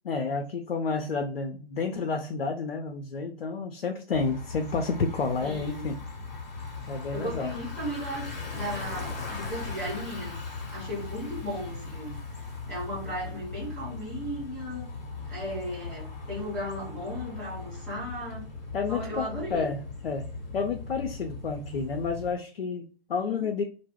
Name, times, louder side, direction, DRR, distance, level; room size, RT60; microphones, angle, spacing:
voice 1, 0.0-6.0 6.9-7.5 18.7-20.3 20.5-23.6, left 4 dB, 80° left, 4 dB, 0.5 m, -30 dB
Bicycle, 4.1-22.3, left 4 dB, 45° left, 0.8 m, -38 dB
voice 2, 5.4-5.9 7.1-10.4 10.7-12.1 12.7-14.9 15.3-18.5 18.9-19.7 23.2-23.5, equal, 5° left, -8 dB, 0.8 m, -36 dB
2.1 x 2.0 x 3.3 m, 0.39 s
figure-of-eight pair, 125°, 30 cm